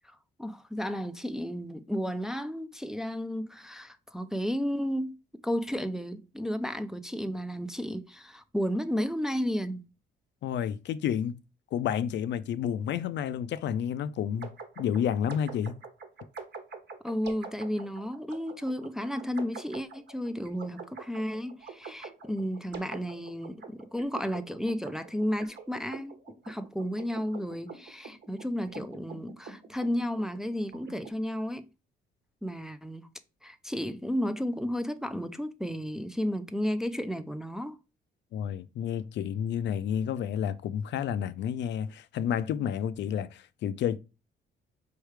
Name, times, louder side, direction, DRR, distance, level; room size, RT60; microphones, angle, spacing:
voice 1, 0.0-5.2 5.4-9.9 17.0-26.2 26.5-31.7 32.4-33.1 33.4-37.8, equal, 5° right, 0.4 m, -33 dB
voice 2, 10.4-11.4 11.7-15.8 38.3-44.0, left 9 dB, 65° left, 0.4 m, -30 dB
sound 1, 14.4-31.1, right 4 dB, 60° right, 1.2 m, -45 dB
4.5 x 3.2 x 3.2 m
cardioid pair, 90°, 20 cm